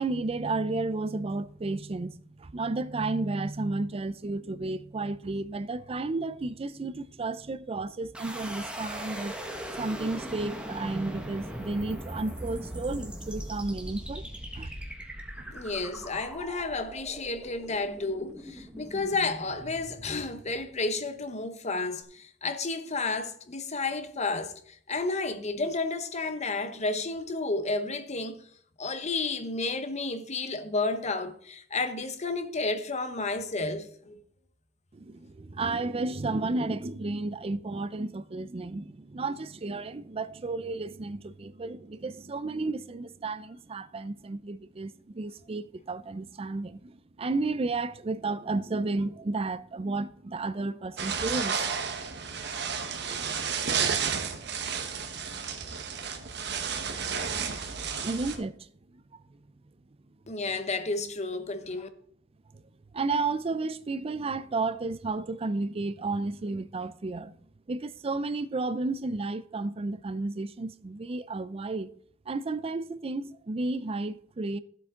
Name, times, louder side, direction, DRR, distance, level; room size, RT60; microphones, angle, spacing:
voice 1, 0.0-9.3 9.8-14.3 14.5-14.7 15.4-15.5 34.9-51.6 52.1-52.2 58.0-59.0 62.9-67.3 67.7-71.9 72.3-74.6, right 3 dB, 30° right, 0.4 m, -32 dB
sound 1, 8.1-21.1, equal, 5° right, 1.4 m, -40 dB
voice 2, 15.5-28.4 28.8-34.2 60.3-61.9, left 3 dB, 35° left, 0.9 m, -31 dB
sound 2, 51.0-58.4, right 6 dB, 60° right, 1.2 m, -32 dB
13.0 x 7.9 x 3.7 m
head